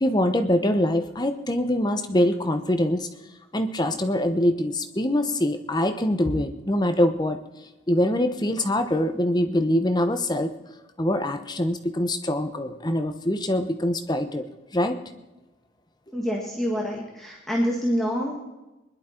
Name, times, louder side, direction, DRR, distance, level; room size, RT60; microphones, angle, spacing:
voice 1, 0.0-3.1 3.5-7.4 7.9-10.5 11.0-14.5 14.7-15.0, left 1 dB, 20° left, 7 dB, 0.9 m, -24 dB
voice 2, 16.1-18.4, equal, ahead, -3 dB, 1.8 m, -26 dB
21.5 x 11.5 x 4.4 m, 1.0 s
head